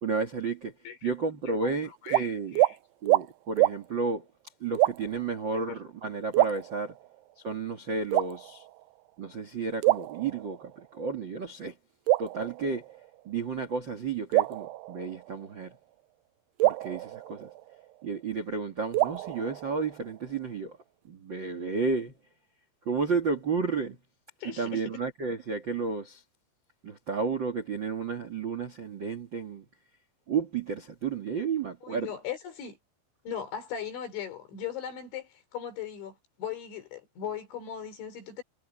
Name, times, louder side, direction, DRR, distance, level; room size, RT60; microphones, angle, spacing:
voice 1, 0.0-0.7 1.0-2.6 3.0-4.2 4.6-6.9 7.4-8.6 9.2-11.7 12.2-12.8 13.2-15.7 16.6-17.5 18.0-20.8 21.0-22.1 22.8-24.0 24.6-26.2 26.8-29.6 30.3-32.1, right 4 dB, 55° right, 1.2 m, -32 dB
voice 2, 2.0-2.8 5.5-5.8 24.4-24.8 31.8-32.8 33.3-38.4, left 8 dB, 80° left, 7.0 m, -38 dB
sound 1, 2.1-2.3 2.6-2.8 3.1-3.3 3.6-3.8 4.8-5.2 6.3-7.2 8.1-8.8 9.8-10.8 12.1-13.2 14.3-15.5 16.6-18.0 18.9-20.2, right 16 dB, 80° right, 2.4 m, -27 dB
omnidirectional pair, 5.2 m